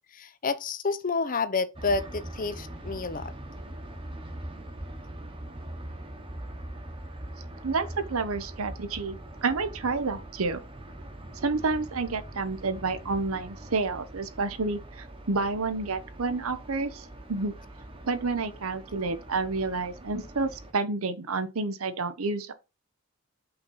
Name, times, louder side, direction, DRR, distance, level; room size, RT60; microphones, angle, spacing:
voice 1, 0.1-3.3, left 4 dB, 40° left, 0.6 m, -29 dB
sound 1, 1.8-20.7, right 1 dB, 25° right, 1.1 m, -42 dB
voice 2, 7.6-10.6 11.4-17.5 18.1-22.5, right 3 dB, 75° right, 0.8 m, -29 dB
5.6 x 4.0 x 5.5 m
head